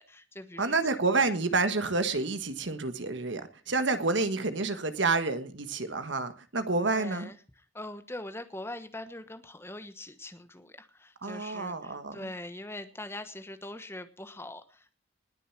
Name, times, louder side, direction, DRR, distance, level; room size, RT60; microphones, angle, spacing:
voice 1, 0.0-0.8 1.1-1.3 6.9-7.4 7.7-15.0, left 1 dB, 10° left, 10 dB, 1.2 m, -42 dB
voice 2, 0.6-7.3 11.2-12.3, right 3 dB, 65° right, 10 dB, 1.5 m, -29 dB
20.0 x 6.9 x 6.0 m, 0.37 s
head